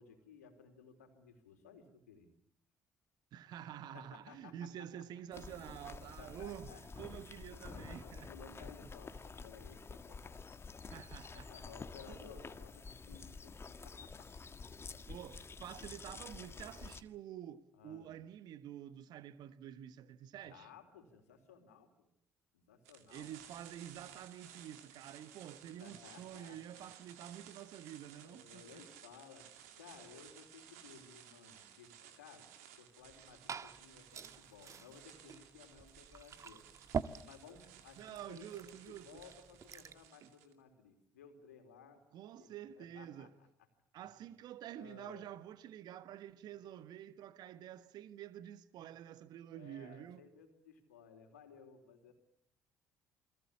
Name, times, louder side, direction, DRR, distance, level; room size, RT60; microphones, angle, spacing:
voice 1, 0.0-2.3 3.9-4.7 6.2-6.8 7.7-10.3 11.3-14.3 17.7-18.1 20.5-22.1 22.5-23.3 25.8-26.9 28.1-32.5 32.8-36.6 37.2-42.0 42.4-43.5 44.8-45.3 49.5-52.1, left 6 dB, 80° left, 3.9 m, -58 dB
voice 2, 3.3-6.7 7.0-8.3 10.9-11.5 12.1-12.2 15.1-20.7 23.1-28.8 38.0-39.2 40.2-40.3 42.1-43.3 43.9-50.2, right 10 dB, 60° right, 1.4 m, -49 dB
sound 1, 5.3-17.0, left 4 dB, 30° left, 1.8 m, -49 dB
sound 2, 22.8-40.5, right 10 dB, 75° right, 2.4 m, -58 dB
Glass / Fill (with liquid), 33.0-40.1, right 6 dB, 40° right, 1.5 m, -46 dB
29.0 x 22.0 x 8.6 m
figure-of-eight pair, 50°, 8 cm